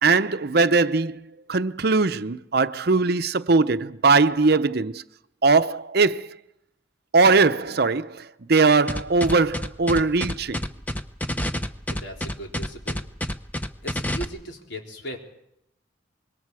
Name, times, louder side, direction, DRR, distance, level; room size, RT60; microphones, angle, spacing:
voice 1, 0.0-1.2 1.5-5.0 5.4-6.4 7.1-10.6, right 4 dB, 55° right, 0.7 m, -20 dB
sound 1, 8.9-14.2, left 1 dB, 10° left, 0.9 m, -28 dB
voice 2, 11.9-13.0 13.8-15.3, equal, 75° left, 3.9 m, -38 dB
26.0 x 22.0 x 4.8 m
head